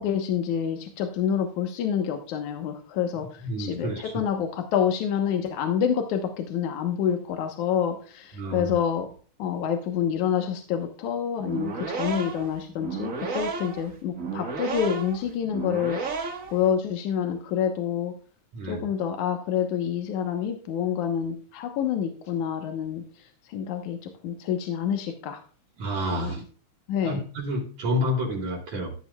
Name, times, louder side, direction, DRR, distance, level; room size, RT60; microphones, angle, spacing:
voice 1, 0.0-9.1 9.4-16.0 16.5-18.1 18.7-25.4 26.1-26.4 26.9-27.2, left 8 dB, 75° left, 4 dB, 2.6 m, -27 dB
voice 2, 3.4-4.2 8.4-8.8 18.5-18.9 25.8-26.4 27.0-29.0, equal, 65° right, -1 dB, 4.0 m, -29 dB
sound 1, 11.4-16.6, right 4 dB, 40° right, 1.2 m, -32 dB
14.5 x 8.7 x 2.3 m, 0.40 s
omnidirectional pair, 3.5 m